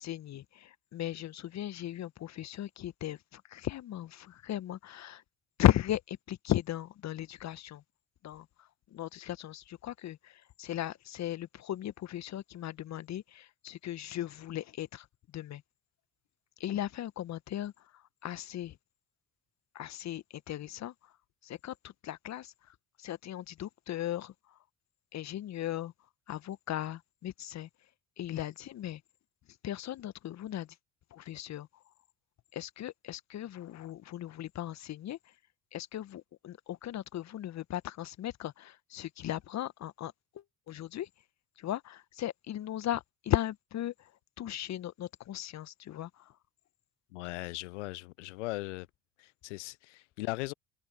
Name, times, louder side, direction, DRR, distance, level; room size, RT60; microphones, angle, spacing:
voice 1, 0.0-5.2 5.6-7.8 8.2-15.1 15.3-15.6 16.6-18.8 19.7-20.9 21.4-24.6 25.1-25.9 26.3-27.7 28.2-29.0 29.6-30.7 31.1-31.7 32.5-35.2 35.7-41.1 41.6-44.1 44.4-46.3, left 12 dB, 45° left, 1.6 m, -36 dB
voice 2, 47.1-48.9 49.2-50.5, left 21 dB, 75° left, 0.8 m, -38 dB
figure-of-eight pair, 55°, 36 cm